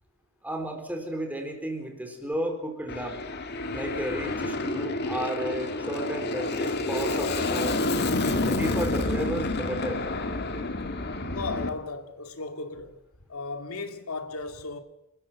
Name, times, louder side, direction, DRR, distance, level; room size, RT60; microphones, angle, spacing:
voice 1, 0.4-3.2 3.7-7.8 8.4-10.0, equal, 5° right, 4.2 m, -33 dB
Aircraft, 2.9-11.7, left 2 dB, 50° left, 2.0 m, -29 dB
voice 2, 11.3-13.0 13.3-14.8, left 3 dB, 90° left, 2.4 m, -35 dB
29.5 x 13.5 x 7.5 m
head